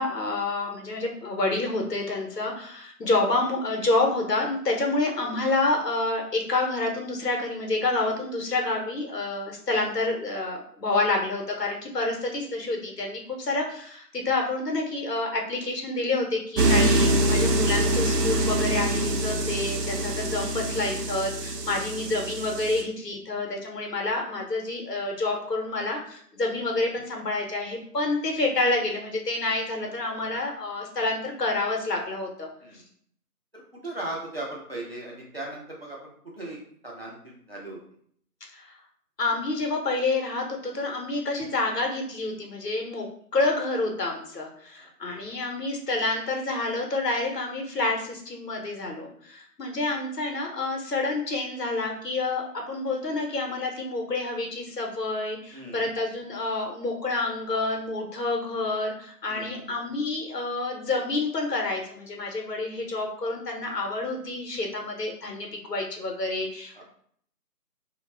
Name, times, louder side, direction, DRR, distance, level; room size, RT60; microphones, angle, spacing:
voice 1, 0.0-32.5 32.7-32.8 38.5-38.8 39.2-43.1 43.3-66.8, left 2 dB, 90° left, 2 dB, 0.9 m, -28 dB
sound 1, 16.6-22.8, right 1 dB, 85° right, 0.6 m, -25 dB
voice 2, 33.5-36.6 36.8-37.8 44.8-44.9 55.5-55.9 59.3-59.7 66.7-66.8, right 1 dB, 40° right, -4 dB, 0.6 m, -38 dB
2.3 x 2.1 x 3.2 m, 0.62 s
figure-of-eight pair, 160°, 47 cm